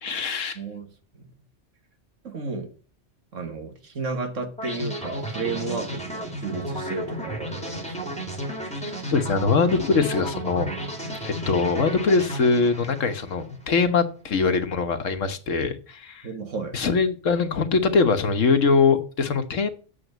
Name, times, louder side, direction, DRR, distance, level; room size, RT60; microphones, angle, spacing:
voice 1, 0.0-0.6 9.1-10.7 11.2-16.3 16.7-19.7, left 4 dB, 90° left, 1.6 m, -22 dB
voice 2, 0.5-1.3 2.2-2.7 3.3-8.1 16.2-16.8, right 3 dB, 85° right, 2.1 m, -33 dB
sound 1, 4.6-13.6, right 1 dB, 5° left, 2.6 m, -33 dB
8.4 x 7.1 x 8.0 m
omnidirectional pair, 1.3 m